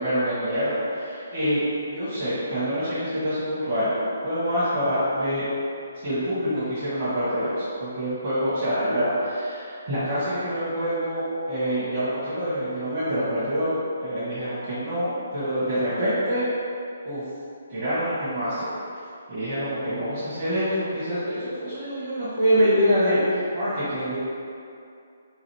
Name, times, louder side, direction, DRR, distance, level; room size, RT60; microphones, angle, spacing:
voice 1, 0.0-3.9 4.2-5.5 6.0-16.5 17.0-17.2 17.7-18.8 19.3-24.2, equal, 40° right, -14 dB, 1.1 m, -26 dB
3.9 x 2.6 x 3.0 m, 2.5 s
figure-of-eight pair, 135°, 0 cm